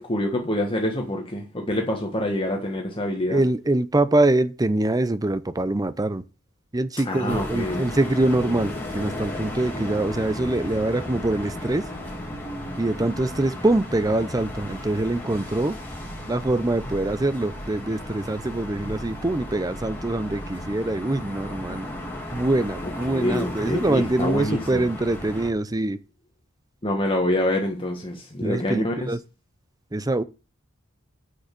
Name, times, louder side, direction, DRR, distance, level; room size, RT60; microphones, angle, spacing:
voice 1, 0.0-3.4 7.0-7.8 22.8-24.8 26.8-29.1, left 1 dB, 25° left, 1.5 m, -26 dB
voice 2, 3.3-6.2 6.7-11.8 12.8-15.8 16.3-21.9 22.3-26.0 28.4-29.2 29.9-30.2, right 2 dB, 20° right, 0.6 m, -24 dB
sound 1, 7.3-25.5, left 1 dB, 10° left, 2.7 m, -35 dB
8.2 x 6.4 x 5.9 m
head